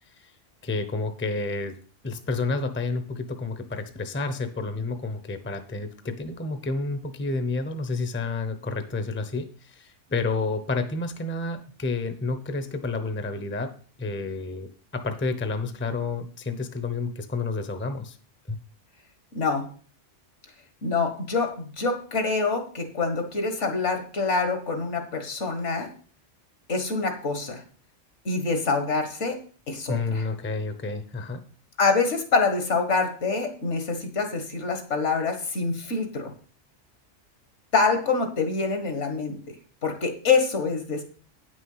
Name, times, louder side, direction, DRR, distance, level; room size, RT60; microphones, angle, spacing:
voice 1, 0.6-1.8 2.0-18.2 18.5-18.6 29.9-31.4, left 3 dB, 10° left, 9 dB, 0.7 m, -30 dB
voice 2, 20.8-25.9 26.7-27.6 28.3-29.4 29.7-30.3 31.8-36.3 37.7-39.4 39.8-41.0, left 4 dB, 70° left, 6 dB, 1.9 m, -25 dB
9.2 x 6.2 x 5.6 m, 0.41 s
omnidirectional pair, 1.3 m